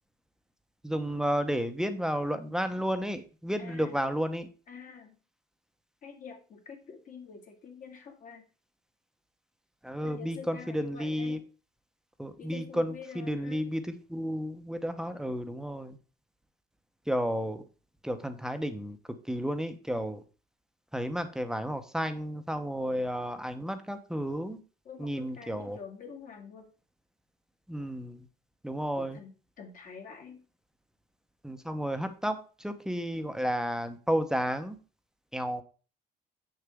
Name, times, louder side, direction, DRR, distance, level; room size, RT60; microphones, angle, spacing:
voice 1, 0.8-4.5 9.8-11.4 12.2-16.0 17.1-17.6 18.0-19.0 19.3-20.2 20.9-24.6 25.0-25.8 27.7-28.3 28.6-29.2 31.4-34.8 35.3-35.6, equal, 5° right, 9 dB, 0.8 m, -32 dB
voice 2, 3.6-4.0 4.7-5.2 6.0-8.4 10.0-11.4 12.4-13.6 24.9-26.7 29.0-30.4, left 6 dB, 55° left, 2 dB, 2.1 m, -47 dB
6.8 x 6.4 x 3.6 m, 0.37 s
cardioid pair, 110°, 17 cm